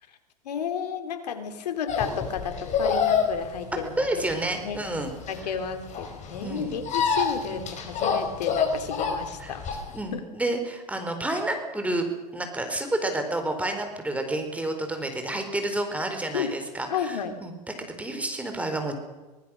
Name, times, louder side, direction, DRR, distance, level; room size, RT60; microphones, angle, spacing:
voice 1, 0.4-4.2 4.6-4.8 5.3-9.6 10.1-10.2 16.3-16.5 16.9-17.3, left 7 dB, 80° left, 8 dB, 3.3 m, -32 dB
sound 1, 1.9-10.0, left 6 dB, 35° left, 5.5 m, -27 dB
voice 2, 4.0-5.1 6.4-6.8 9.4-9.5 9.9-12.1 12.3-18.9, right 1 dB, 5° right, 5 dB, 4.4 m, -30 dB
25.0 x 19.5 x 6.4 m, 1.2 s
hypercardioid pair, 105°, 21 cm